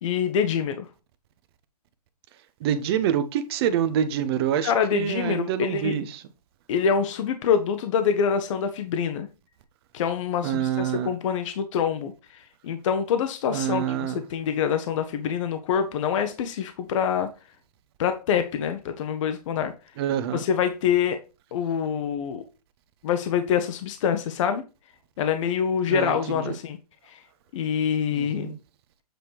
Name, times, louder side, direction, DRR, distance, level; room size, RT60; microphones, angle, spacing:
voice 1, 0.0-0.9 4.6-6.0 6.7-9.3 9.9-17.3 18.0-19.7 20.3-21.2 21.5-22.4 23.0-24.6 25.2-26.8 27.1-27.2 27.5-28.6, left 7 dB, 50° left, 0.9 m, -25 dB
voice 2, 2.6-6.1 10.4-11.1 13.5-14.2 20.0-20.4 25.9-26.2 26.5-26.6 28.1-28.5, right 9 dB, 40° right, 0.8 m, -26 dB
7.8 x 3.3 x 4.6 m
hypercardioid pair, 140°, 20 cm